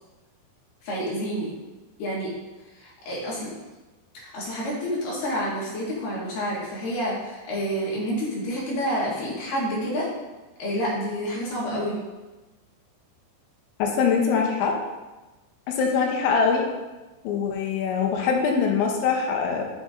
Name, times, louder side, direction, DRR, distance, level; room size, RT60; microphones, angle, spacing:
voice 1, 0.8-1.5 2.0-2.3 2.8-3.5 4.1-10.1 10.6-12.0, equal, 60° left, -5 dB, 2.9 m, -28 dB
voice 2, 13.8-14.8 15.7-16.7 17.2-19.7, left 5 dB, 90° left, 1 dB, 3.1 m, -23 dB
8.1 x 6.2 x 2.6 m, 1.1 s
omnidirectional pair, 5.3 m